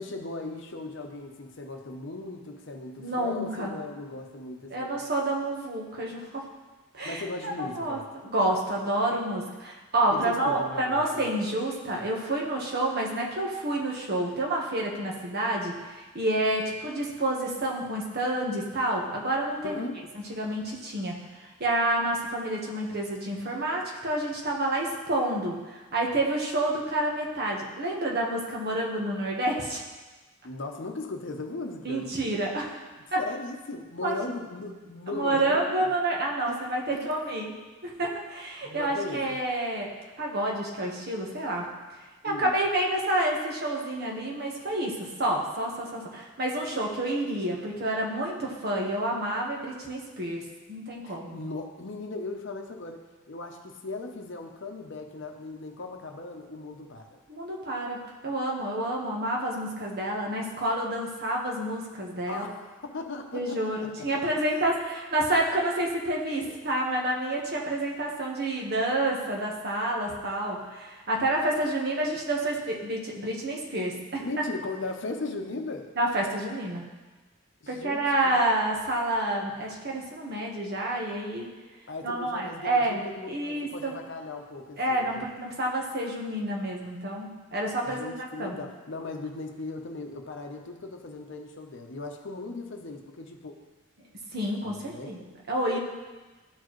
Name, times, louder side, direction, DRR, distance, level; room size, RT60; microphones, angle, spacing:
voice 1, 0.0-5.0 7.0-8.1 10.1-11.2 19.6-20.0 30.4-32.1 33.2-35.9 36.5-36.6 36.9-37.1 38.6-39.4 42.2-42.6 51.0-57.2 62.3-64.1 64.3-64.4 74.2-75.9 77.6-78.4 81.9-85.2 87.8-93.6 94.6-95.1, left 3 dB, 60° left, 4 dB, 0.8 m, -38 dB
voice 2, 3.0-3.7 4.7-6.4 6.9-8.0 8.2-19.8 20.4-29.8 31.8-32.8 33.1-33.2 34.0-34.1 35.1-37.5 37.8-39.9 40.2-41.7 42.2-50.4 50.7-51.4 57.3-62.5 63.3-74.2 76.0-76.8 77.7-81.5 82.0-83.9 84.8-88.6 94.3-95.2 95.5-95.8, right 1 dB, 50° right, -1 dB, 1.3 m, -29 dB
13.5 x 4.5 x 3.1 m, 1.2 s
head